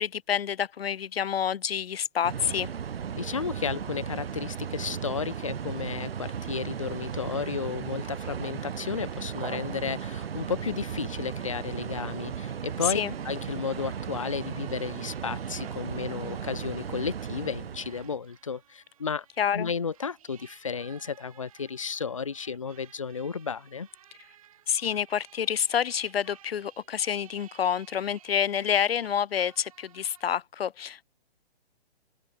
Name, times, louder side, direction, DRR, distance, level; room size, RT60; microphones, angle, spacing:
voice 1, 0.0-2.7 12.8-13.1 19.4-19.7 24.7-31.1, left 8 dB, 65° left, 0.8 m, -28 dB
sound 1, 2.2-18.2, right 7 dB, 65° right, 1.4 m, -36 dB
voice 2, 3.2-19.3 19.5-23.9, left 5 dB, 35° left, 0.4 m, -33 dB
sound 2, 13.0-30.2, right 11 dB, 35° right, 1.9 m, -57 dB
open air
hypercardioid pair, 170°, 32 cm